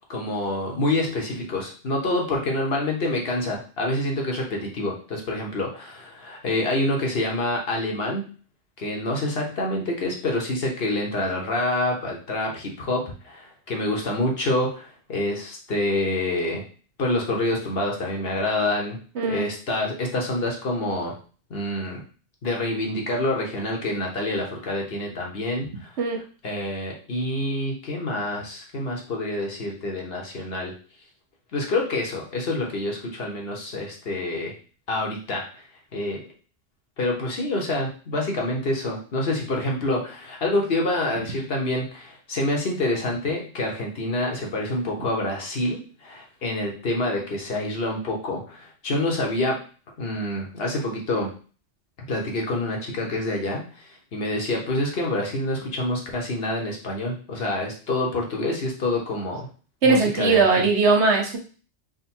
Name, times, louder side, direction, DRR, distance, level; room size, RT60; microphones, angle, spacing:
voice 1, 0.1-8.3 8.8-16.6 17.0-19.0 19.3-21.1 21.5-22.0 22.4-25.9 26.4-30.7 31.5-34.5 34.9-35.6 35.9-36.2 37.0-49.6 50.0-51.3 52.1-59.5 59.8-60.7, left 1 dB, 55° left, 0 dB, 1.1 m, -27 dB
voice 2, 19.2-19.5 26.0-26.2 59.8-61.4, right 4 dB, 65° right, 1 dB, 1.1 m, -19 dB
3.8 x 2.2 x 4.3 m, 0.38 s
omnidirectional pair, 1.3 m